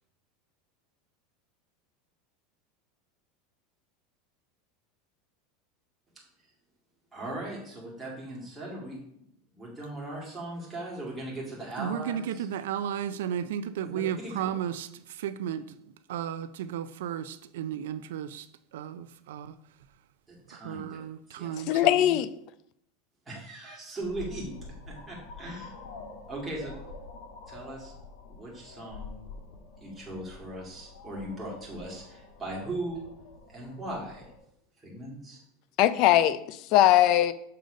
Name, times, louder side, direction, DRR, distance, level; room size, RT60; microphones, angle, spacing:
voice 1, 7.1-9.3 9.5-12.4 13.8-14.3 20.3-21.0 21.3-21.6 23.3-24.5 24.9-25.7 26.3-26.7 27.5-27.9 28.3-29.2 29.8-33.1 33.5-34.3 34.8-35.4, right 1 dB, 10° right, 2.2 m, -39 dB
voice 2, 11.8-15.7 16.1-19.6 20.5-22.2, right 9 dB, 85° right, 0.3 m, -34 dB
voice 3, 21.7-22.3 35.8-37.3, left 13 dB, 45° left, 0.4 m, -21 dB
sound 1, 24.0-34.4, left 3 dB, 75° left, 1.7 m, -47 dB
6.6 x 3.8 x 5.1 m
supercardioid pair, 155°, 0 cm